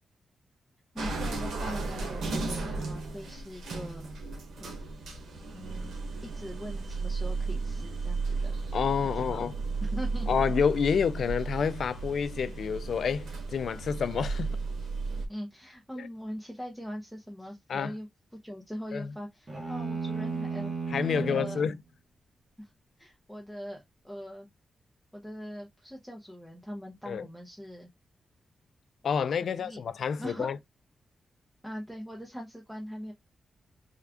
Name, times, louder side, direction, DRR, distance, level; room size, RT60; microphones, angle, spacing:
voice 1, 0.9-4.1 4.6-4.8 5.5-8.6 9.1-9.5 9.8-10.3 15.3-18.1 18.4-20.7 21.1-21.7 22.6-22.7 23.0-24.5 25.1-27.9 29.4-29.8 30.2-30.5 31.6-33.1, equal, 5° right, 0.7 m, -41 dB
sound 1, 1.0-15.3, right 3 dB, 90° right, 1.1 m, -34 dB
voice 2, 8.7-9.5 10.3-14.6 16.0-16.1 17.7-17.9 18.9-19.1 20.9-21.8 27.1-27.2 29.0-30.6, left 6 dB, 70° left, 0.4 m, -28 dB
sound 2, 19.5-21.7, right 4 dB, 30° right, 0.9 m, -34 dB
3.5 x 2.4 x 3.5 m
wide cardioid pair, 110°, 0 cm